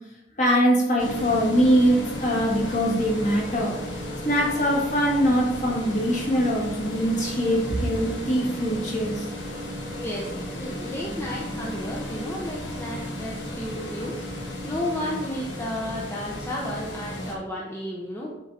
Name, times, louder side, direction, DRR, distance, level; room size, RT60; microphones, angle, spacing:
voice 1, 0.4-3.7 4.2-9.1, equal, 40° left, -3 dB, 1.9 m, -22 dB
sound 1, 1.0-17.3, left 1 dB, 70° left, 1.4 m, -34 dB
voice 2, 10.0-18.3, left 1 dB, 15° left, -4 dB, 0.7 m, -33 dB
7.5 x 3.7 x 4.1 m, 0.97 s
head